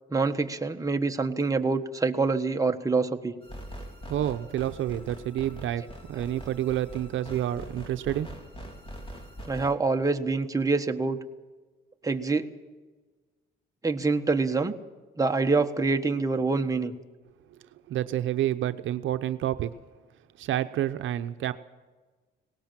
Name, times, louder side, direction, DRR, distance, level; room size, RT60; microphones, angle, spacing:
voice 1, 0.1-3.3 9.5-11.2 12.0-12.5 13.8-14.7 15.2-16.9, right 3 dB, 15° right, 5 dB, 1.4 m, -26 dB
sound 1, 3.4-9.7, equal, 25° left, 3.6 m, -43 dB
voice 2, 4.1-5.8 6.1-8.3 17.9-19.7 20.4-21.5, right 12 dB, 75° right, 10 dB, 0.8 m, -29 dB
19.0 x 18.0 x 7.6 m, 1.3 s
cardioid pair, 90°, 20 cm